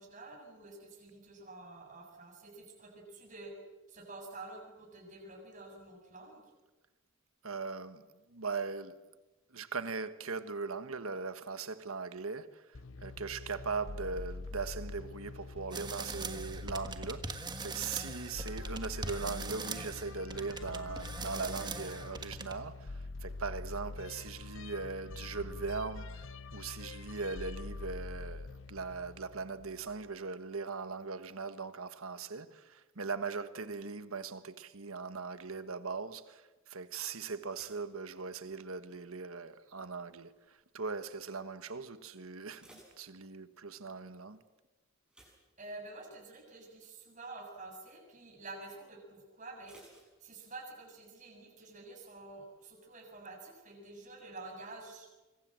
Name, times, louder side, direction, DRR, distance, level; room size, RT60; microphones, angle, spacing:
voice 1, 0.0-3.5 3.9-6.4 45.6-55.1, right 2 dB, 35° right, 7.0 m, -49 dB
voice 2, 7.4-8.0 8.3-8.9 9.5-12.7 13.0-26.3 26.5-44.4, right 4 dB, 80° right, 1.4 m, -40 dB
sound 1, 12.7-30.1, left 3 dB, 65° left, 0.8 m, -45 dB
sound 2, 15.7-22.6, right 4 dB, 20° right, 1.5 m, -42 dB
sound 3, 37.5-39.0 39.2-39.7 40.3-40.7 41.0-41.1 41.5-41.6 42.2-43.8 45.1-46.2 46.6-46.8 47.2-47.3 49.6-50.8 51.1-51.2, right 1 dB, 5° right, 7.9 m, -61 dB
25.5 x 24.0 x 7.6 m
head